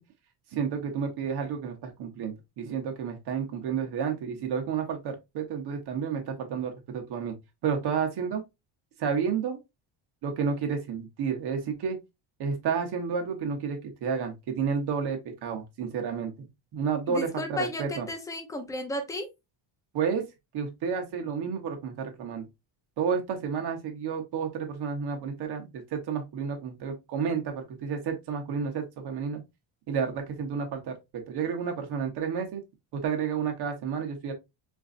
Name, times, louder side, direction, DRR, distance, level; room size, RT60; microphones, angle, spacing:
voice 1, 0.5-7.3 7.6-8.4 9.0-9.6 10.2-12.0 12.4-16.5 16.7-18.1 19.9-20.3 20.5-22.5 23.0-29.4 29.9-30.9 31.3-32.6 32.9-34.3, right 6 dB, 50° right, 1.1 m, -31 dB
voice 2, 17.1-19.3, left 1 dB, 5° left, 0.6 m, -34 dB
4.5 x 2.6 x 2.5 m
cardioid pair, 160°, 49 cm